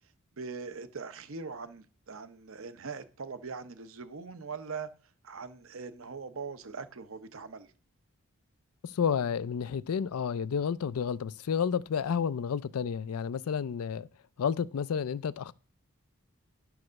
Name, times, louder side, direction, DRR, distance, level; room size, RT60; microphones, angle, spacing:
voice 1, 0.4-4.9 5.2-7.7, right 4 dB, 65° right, 0.8 m, -41 dB
voice 2, 8.8-14.1 14.4-15.5, left 7 dB, 85° left, 0.4 m, -31 dB
10.5 x 4.8 x 6.2 m
head